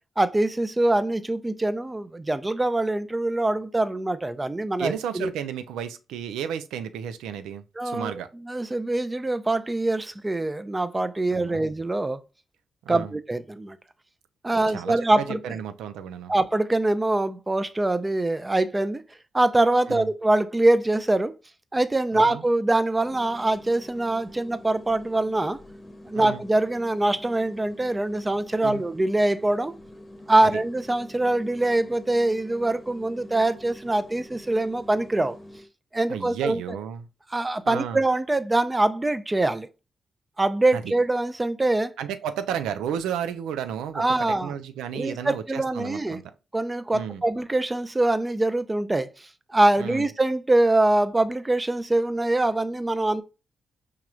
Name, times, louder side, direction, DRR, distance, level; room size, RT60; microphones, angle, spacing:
voice 1, 0.2-5.3 7.8-8.2 8.5-12.2 12.9-13.8 14.4-15.4 16.3-19.0 19.3-21.3 21.7-25.6 26.1-29.7 30.3-35.4 35.9-36.6 37.3-39.7 40.4-41.9 43.9-44.5 44.9-46.2 46.5-53.2, right 2 dB, 25° right, 0.5 m, -24 dB
voice 2, 4.8-8.3 11.3-11.7 12.8-13.1 14.7-16.3 19.9-20.1 22.1-22.4 26.1-26.4 28.6-28.8 30.4-30.6 36.1-37.1 37.7-38.0 40.7-40.9 42.0-46.3 46.9-47.2 49.8-50.1, right 9 dB, 90° right, 0.3 m, -33 dB
sound 1, 23.0-35.7, left 1 dB, 40° left, 0.8 m, -46 dB
4.9 x 2.9 x 2.2 m
supercardioid pair, 45°, 0 cm